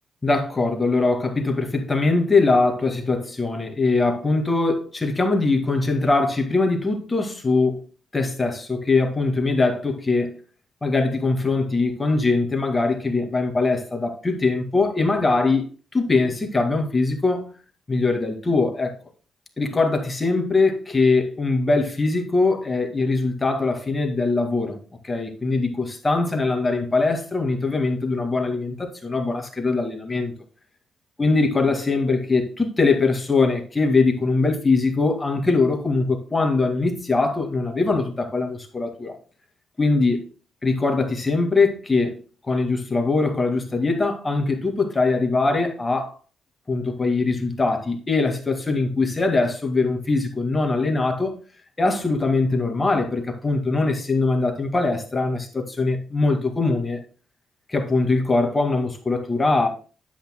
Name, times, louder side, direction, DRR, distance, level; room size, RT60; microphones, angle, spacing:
voice 1, 0.2-7.8 8.1-10.4 10.8-17.5 17.9-18.9 19.6-24.8 25.0-30.3 31.2-39.2 39.8-40.3 40.6-42.2 42.4-46.1 46.7-51.4 51.8-57.0 57.7-59.7, left 3 dB, 25° left, 2.2 m, -22 dB
10.0 x 8.5 x 2.2 m
hypercardioid pair, 50°, 0 cm